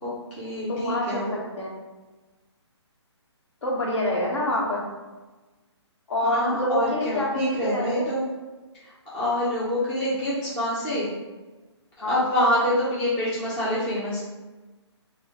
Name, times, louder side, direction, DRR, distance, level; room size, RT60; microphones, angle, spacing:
voice 1, 0.0-1.2 6.2-8.2 9.1-11.1 12.0-14.2, left 1 dB, 5° left, -9 dB, 0.4 m, -26 dB
voice 2, 0.7-1.8 3.6-4.8 6.1-8.1 12.0-12.2, left 1 dB, 70° left, -2 dB, 1.1 m, -26 dB
4.3 x 2.1 x 2.8 m, 1.2 s
hypercardioid pair, 160°, 15 cm